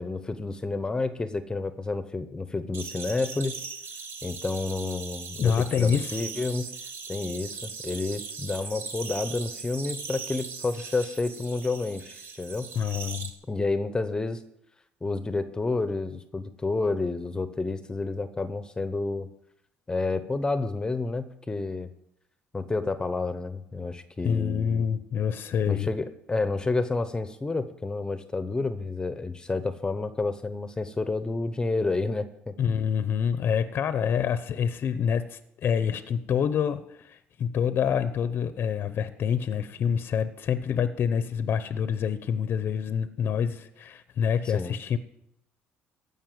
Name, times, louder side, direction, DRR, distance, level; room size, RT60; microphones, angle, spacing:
voice 1, 0.0-3.6 4.2-6.7 7.1-12.7 13.5-14.4 15.0-19.3 19.9-21.9 22.5-24.9 25.7-32.5 44.5-44.8, left 3 dB, 20° left, 11 dB, 0.9 m, -30 dB
sound 1, 2.7-13.3, right 5 dB, 55° right, 2.0 m, -39 dB
voice 2, 5.4-6.2 12.7-13.3 24.2-25.9 32.6-45.0, left 7 dB, 50° left, 12 dB, 0.8 m, -27 dB
15.0 x 5.5 x 9.2 m, 0.78 s
cardioid pair, 95°, 5 cm